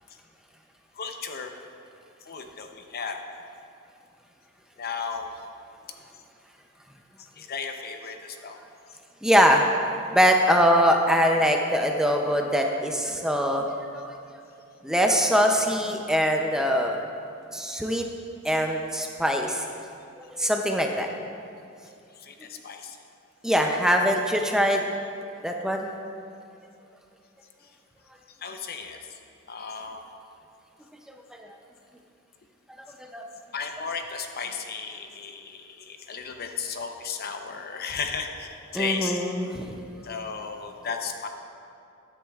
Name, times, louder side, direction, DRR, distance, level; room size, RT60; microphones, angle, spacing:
voice 1, 1.0-1.5 2.3-3.2 4.8-5.3 7.4-8.6 22.2-23.0 28.4-29.0 29.5-30.1 33.5-39.2 40.0-41.3, left 5 dB, 50° left, 5 dB, 0.7 m, -34 dB
voice 2, 9.2-9.6 10.1-14.1 14.8-17.0 17.5-18.0 18.4-19.7 20.4-21.1 23.4-24.8 25.4-25.9 33.1-33.2 38.7-39.7, equal, 5° right, 2 dB, 0.5 m, -22 dB
14.0 x 10.0 x 2.4 m, 2.5 s
head